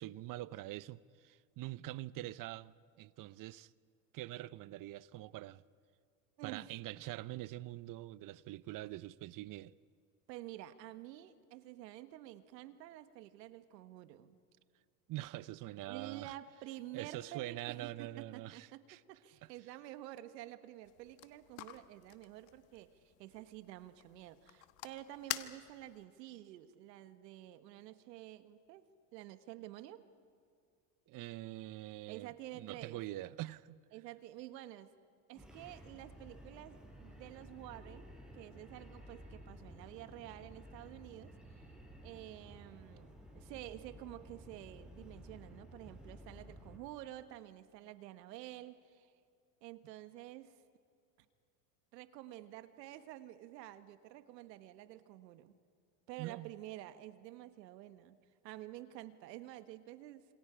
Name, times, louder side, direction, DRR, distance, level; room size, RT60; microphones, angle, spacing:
voice 1, 0.0-3.7 4.1-5.6 6.4-9.7 15.1-16.3 16.9-19.0 19.4-19.5 31.1-33.8 56.2-56.5, right 16 dB, 40° right, 0.6 m, -44 dB
voice 2, 6.4-6.7 10.3-14.4 15.9-30.0 32.1-33.0 33.9-34.9 35.3-41.3 42.0-49.1 49.6-50.6 51.9-55.5 56.1-58.2 58.4-60.3, right 14 dB, 85° right, 1.4 m, -50 dB
sound 1, 20.8-26.0, left 16 dB, 60° left, 1.3 m, -48 dB
sound 2, 35.4-46.8, equal, ahead, 5.7 m, -54 dB
27.0 x 26.5 x 5.0 m
supercardioid pair, 105°, 49 cm